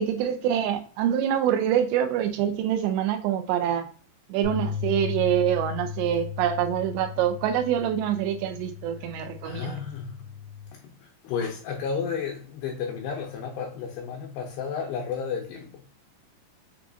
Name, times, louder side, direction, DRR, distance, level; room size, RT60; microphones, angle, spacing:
voice 1, 0.0-3.9 4.3-9.8, right 10 dB, 85° right, 2.6 m, -25 dB
sound 1, 4.4-10.7, left 8 dB, 60° right, 1.4 m, -36 dB
voice 2, 9.4-10.2 10.7-15.8, left 6 dB, 80° left, 2.4 m, -32 dB
6.8 x 2.5 x 2.4 m
omnidirectional pair, 5.1 m